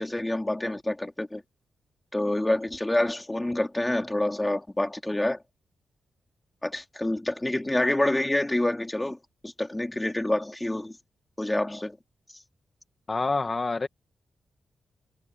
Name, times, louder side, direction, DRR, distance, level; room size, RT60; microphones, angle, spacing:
voice 1, 0.0-1.4 2.1-5.4 6.6-9.2 9.4-11.0 11.4-12.0, left 1 dB, 15° left, 3.6 m, -27 dB
voice 2, 13.1-13.9, left 3 dB, 30° left, 1.2 m, -27 dB
cardioid pair, 105°, 0 cm